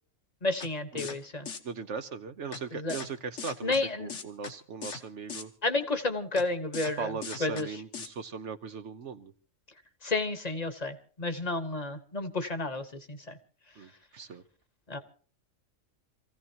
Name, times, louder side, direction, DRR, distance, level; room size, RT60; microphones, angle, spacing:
voice 1, 0.4-1.5 2.7-3.0 3.6-4.1 5.6-7.1 7.4-7.7 10.0-13.4 14.9-15.0, left 2 dB, 30° left, 9 dB, 1.3 m, -31 dB
sound 1, 0.6-0.7 1.0-1.2 1.5-1.6 2.5-2.6 2.9-3.1 3.4-3.8 4.1-4.5 4.8-5.0 5.3-5.4 6.4-6.5 6.7-6.9 7.2-7.6 7.9-8.1, left 5 dB, 65° left, 1.6 m, -39 dB
voice 2, 1.6-5.5 7.0-9.3 13.8-14.4, right 5 dB, 65° right, 9 dB, 1.2 m, -39 dB
27.5 x 15.5 x 2.9 m, 0.39 s
omnidirectional pair, 1.4 m